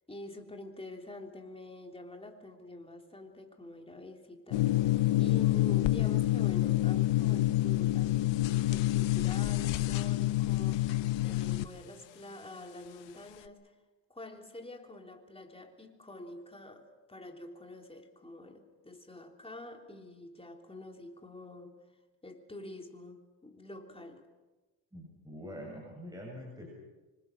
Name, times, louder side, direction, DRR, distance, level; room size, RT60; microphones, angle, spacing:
voice 1, 0.1-4.9 5.2-13.8 14.1-21.8 22.2-24.2, left 2 dB, 15° left, 3 dB, 3.4 m, -47 dB
sound 1, 4.5-11.6, left 15 dB, 85° left, 1.1 m, -27 dB
voice 2, 24.9-26.8, equal, 10° right, -2 dB, 7.4 m, -45 dB
26.5 x 25.5 x 6.2 m, 1.2 s
cardioid pair, 100°, 44 cm